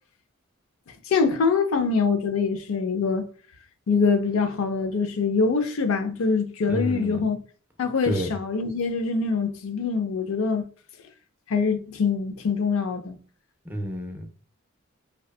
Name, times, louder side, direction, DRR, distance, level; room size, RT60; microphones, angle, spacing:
voice 1, 1.1-3.2 3.9-7.4 7.8-10.7 11.5-13.1, left 5 dB, 70° left, 0.4 m, -24 dB
voice 2, 6.7-7.2 8.0-8.3 13.7-14.3, equal, 10° right, 0.4 m, -29 dB
2.6 x 2.2 x 2.2 m
head